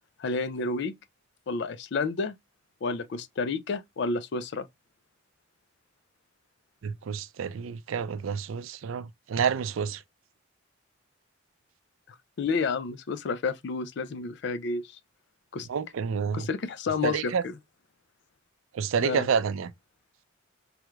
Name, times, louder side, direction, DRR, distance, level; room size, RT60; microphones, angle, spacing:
voice 1, 0.2-0.9 1.5-2.3 2.8-4.7 12.1-14.9 15.5-15.7 16.3-17.6 19.0-19.3, left 4 dB, 55° left, 0.4 m, -30 dB
voice 2, 6.8-10.0 15.7-16.5 17.0-17.4 18.7-19.7, right 6 dB, 80° right, 0.4 m, -29 dB
3.4 x 3.0 x 2.2 m
head